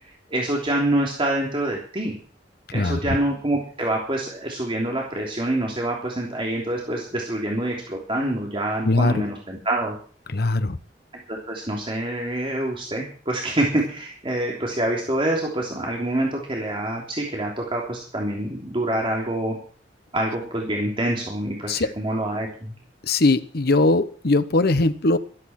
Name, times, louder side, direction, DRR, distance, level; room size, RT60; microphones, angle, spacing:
voice 1, 0.3-2.1 2.7-9.9 11.3-19.6 20.1-22.7, right 1 dB, 30° right, -1 dB, 3.2 m, -26 dB
voice 2, 2.7-3.2 8.8-9.2 10.3-10.8 21.7-21.9 23.0-25.2, left 2 dB, 60° left, 12 dB, 1.0 m, -20 dB
13.5 x 13.0 x 5.9 m, 0.43 s
head